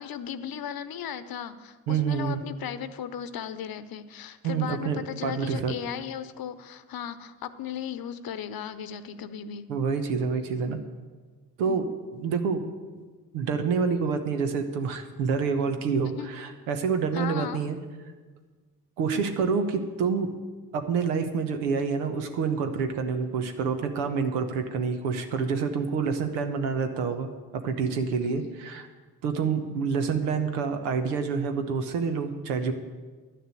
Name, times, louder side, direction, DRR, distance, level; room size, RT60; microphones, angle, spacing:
voice 1, 0.0-9.7 11.6-11.9 16.1-16.3 17.1-17.6 26.7-26.9 28.2-28.6, left 8 dB, 50° left, 13 dB, 0.9 m, -36 dB
voice 2, 1.9-2.4 4.4-5.7 9.7-10.8 11.6-11.8 12.1-12.6 13.3-17.8 19.0-20.3 20.7-28.9 29.2-32.7, right 5 dB, 80° right, 7 dB, 1.0 m, -27 dB
11.0 x 6.7 x 9.0 m, 1.4 s
hypercardioid pair, 40°, 46 cm